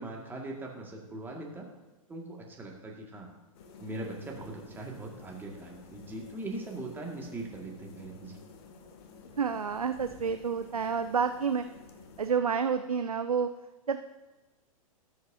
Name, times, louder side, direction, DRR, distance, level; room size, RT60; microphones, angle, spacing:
voice 1, 0.0-1.7 2.1-3.3 3.8-8.4, right 2 dB, 10° right, -1 dB, 2.0 m, -40 dB
sound 1, 3.5-12.3, left 4 dB, 45° left, 1.1 m, -52 dB
voice 2, 9.4-11.6 12.2-13.5 13.9-14.0, right 6 dB, 80° right, 9 dB, 0.5 m, -29 dB
18.0 x 6.6 x 2.8 m, 1.1 s
figure-of-eight pair, 105°, 18 cm